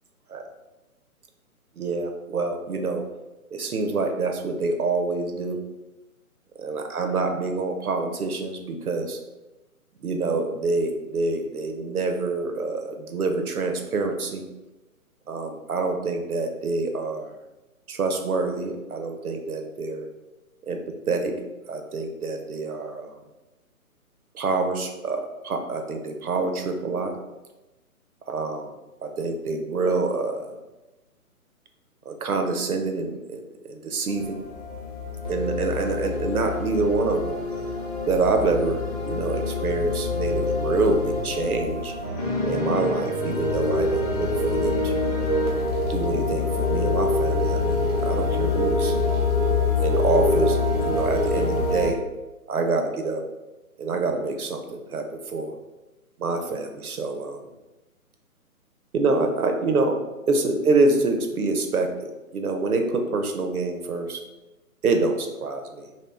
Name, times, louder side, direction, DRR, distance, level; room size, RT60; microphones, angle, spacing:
voice 1, 1.8-3.0 3.5-5.6 6.6-9.2 10.0-14.4 15.3-17.3 17.9-20.1 20.6-20.8 21.1-21.3 21.7-23.1 24.3-27.1 28.3-28.7 29.0-30.6 32.1-33.4 33.7-34.4 35.3-37.4 38.1-41.9 42.4-45.1 45.9-49.0 49.8-52.0 52.5-53.2 53.8-55.5 56.2-57.4 58.9-60.0 60.3-64.2 64.8-65.9, right 3 dB, 75° right, 5 dB, 0.7 m, -26 dB
sound 1, 34.1-51.9, left 2 dB, 30° left, 0.5 m, -25 dB
3.0 x 2.9 x 3.2 m, 1.0 s
figure-of-eight pair, 140°, 44 cm